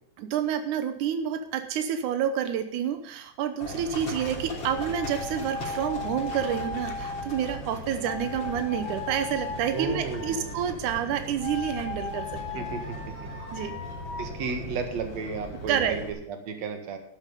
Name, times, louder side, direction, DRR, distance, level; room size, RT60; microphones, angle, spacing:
voice 1, 0.2-12.3 12.5-12.7 13.5-13.7 15.7-16.0, right 9 dB, 90° right, 8 dB, 1.7 m, -29 dB
Livestock farm animals working animals, 3.6-16.1, left 1 dB, 30° left, 3.6 m, -39 dB
sound 1, 4.7-7.6 8.0-10.7 11.4-14.3, left 5 dB, 55° left, 2.6 m, -37 dB
voice 2, 9.7-10.6 12.5-13.0 14.2-17.0, right 5 dB, 50° right, 5 dB, 2.4 m, -33 dB
12.0 x 9.8 x 5.3 m, 0.75 s
omnidirectional pair, 4.9 m